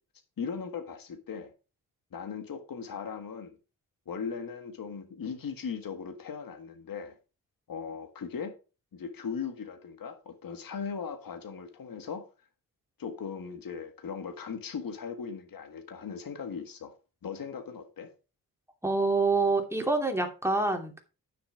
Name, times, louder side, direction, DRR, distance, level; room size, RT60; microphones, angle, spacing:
voice 1, 0.4-1.5 2.1-3.5 4.0-7.1 7.7-8.6 8.9-12.3 13.0-16.9 17.2-18.1, left 6 dB, 65° left, 1.7 m, -38 dB
voice 2, 18.8-21.0, right 3 dB, 5° right, 2.7 m, -26 dB
9.6 x 6.9 x 5.0 m
cardioid pair, 75°, 36 cm